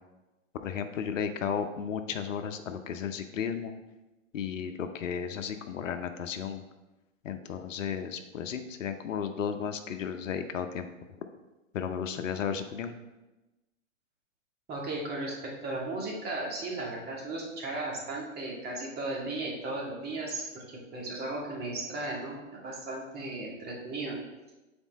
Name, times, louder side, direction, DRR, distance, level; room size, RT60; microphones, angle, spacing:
voice 1, 0.6-3.7 4.3-6.6 7.2-10.9 11.7-13.0, left 7 dB, 70° left, 7 dB, 0.8 m, -34 dB
voice 2, 14.7-20.4 20.9-24.2, right 2 dB, 25° right, -2 dB, 1.9 m, -35 dB
7.1 x 4.4 x 4.1 m, 1.1 s
hypercardioid pair, 115°, 39 cm